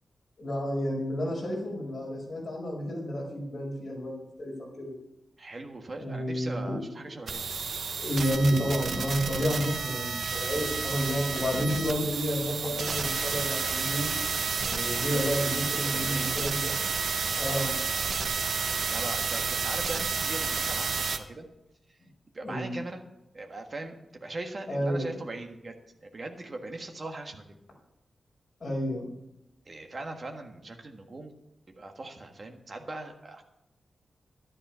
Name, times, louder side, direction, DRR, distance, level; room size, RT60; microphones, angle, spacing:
voice 1, 0.4-4.9 6.0-6.8 7.7-14.2 14.5-16.8 17.4-17.7 22.4-22.7 24.7-25.2 28.6-29.1, equal, 35° left, -2 dB, 5.4 m, -30 dB
voice 2, 5.4-7.4 11.9-12.0 12.6-13.1 15.9-16.3 17.2-17.7 18.9-21.5 22.3-23.0 23.3-27.5 29.6-31.3 31.8-33.4, right 2 dB, 35° right, 4 dB, 1.5 m, -40 dB
sound 1, 7.3-21.2, right 5 dB, 70° right, 1.0 m, -30 dB
12.0 x 10.5 x 5.6 m, 0.87 s
wide cardioid pair, 150°, 0 cm